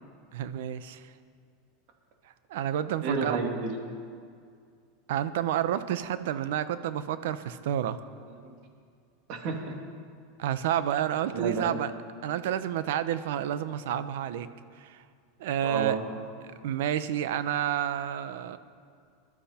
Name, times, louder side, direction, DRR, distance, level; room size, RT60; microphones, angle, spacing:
voice 1, 0.3-1.0 2.5-3.4 5.1-8.0 10.4-11.9 12.2-14.5 14.8-15.0 15.4-16.0 16.6-18.6, right 10 dB, 75° right, 13 dB, 0.8 m, -30 dB
voice 2, 3.0-3.8 8.2-8.5 9.3-9.7 11.3-11.9 15.6-16.0, right 4 dB, 55° right, 2 dB, 2.5 m, -31 dB
20.5 x 12.5 x 4.4 m, 2.2 s
supercardioid pair, 115°, 0 cm